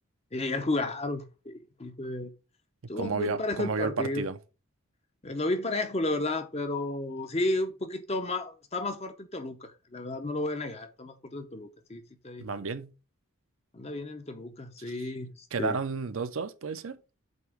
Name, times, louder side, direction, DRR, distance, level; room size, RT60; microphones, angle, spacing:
voice 1, 0.3-2.3 2.9-4.2 5.2-12.5 13.7-15.8, left 2 dB, 30° left, 0.7 m, -32 dB
voice 2, 3.0-4.4 12.4-12.9 14.9-15.1 15.5-17.0, right 4 dB, 70° right, 0.6 m, -32 dB
8.0 x 3.0 x 4.8 m
head